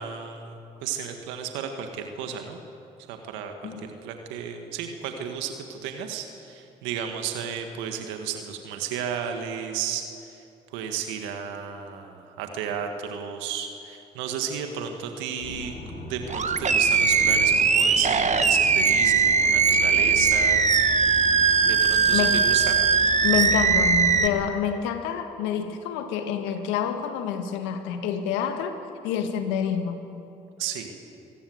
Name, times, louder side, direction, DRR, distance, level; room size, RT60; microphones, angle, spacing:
voice 1, 0.0-2.6 3.1-10.4 10.7-15.7 16.0-20.6 21.7-22.8 30.6-30.9, right 7 dB, 85° right, 5 dB, 1.8 m, -33 dB
sound 1, 15.4-24.3, left 2 dB, 55° left, 6.4 m, -38 dB
Animal, 16.3-24.3, right 5 dB, 40° right, 1.6 m, -20 dB
voice 2, 22.1-22.4 23.2-28.8 29.0-30.0, left 8 dB, 85° left, 7 dB, 1.7 m, -27 dB
24.0 x 19.5 x 8.0 m, 2.8 s
hypercardioid pair, 50°, 19 cm